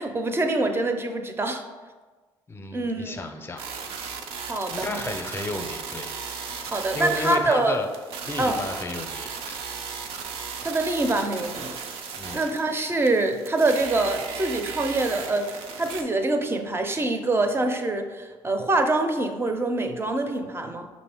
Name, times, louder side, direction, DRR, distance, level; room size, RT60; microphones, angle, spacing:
voice 1, 0.0-1.6 2.7-3.2 4.4-5.0 6.6-7.7 8.4-8.6 10.6-11.8 12.3-20.9, right 2 dB, 25° right, 6 dB, 0.5 m, -25 dB
voice 2, 2.5-3.6 4.7-6.1 6.9-7.9 8.3-9.6 12.2-12.4, left 2 dB, 25° left, 5 dB, 0.6 m, -32 dB
sound 1, 3.6-16.0, right 5 dB, 75° right, 0.5 m, -36 dB
5.3 x 2.6 x 3.4 m, 1.3 s
supercardioid pair, 65°, 10 cm